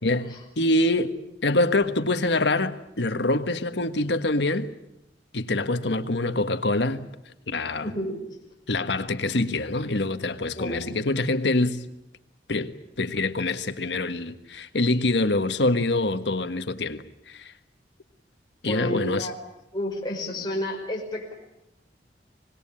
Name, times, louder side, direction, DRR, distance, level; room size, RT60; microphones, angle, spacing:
voice 1, 0.0-1.1 1.4-4.7 5.3-7.1 7.5-7.9 8.7-11.8 12.5-17.5 18.6-19.3, left 2 dB, 80° left, 1.5 m, -25 dB
voice 2, 7.8-8.2 10.6-10.9 18.7-19.3 19.7-21.3, left 1 dB, 25° left, 5.5 m, -31 dB
25.5 x 20.5 x 8.8 m
head